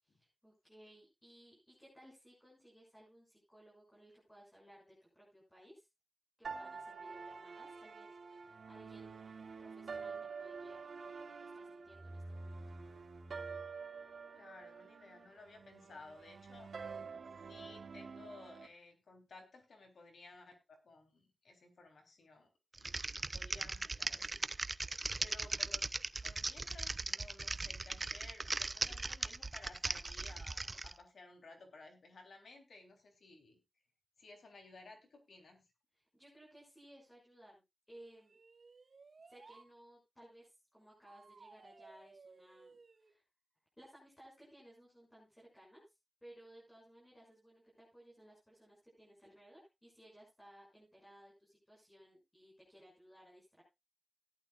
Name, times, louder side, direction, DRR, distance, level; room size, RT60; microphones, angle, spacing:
voice 1, 0.0-5.9 6.4-9.2 9.6-12.6 35.9-38.3 39.2-43.2 43.8-53.6, right 1 dB, 10° left, -5 dB, 7.0 m, -60 dB
sound 1, 6.4-18.7, right 4 dB, 85° right, 2.8 m, -48 dB
voice 2, 14.3-16.7 17.4-22.5 22.8-24.5 25.2-25.9 26.2-33.6 34.2-35.6, left 3 dB, 80° left, 3 dB, 3.7 m, -57 dB
Typing, 22.7-30.9, right 3 dB, 30° right, 0.6 m, -39 dB
sound 2, 37.9-39.7 41.1-43.1, right 4 dB, 55° right, 1.7 m, -60 dB
17.0 x 11.5 x 2.5 m, 0.24 s
wide cardioid pair, 120°, 0 cm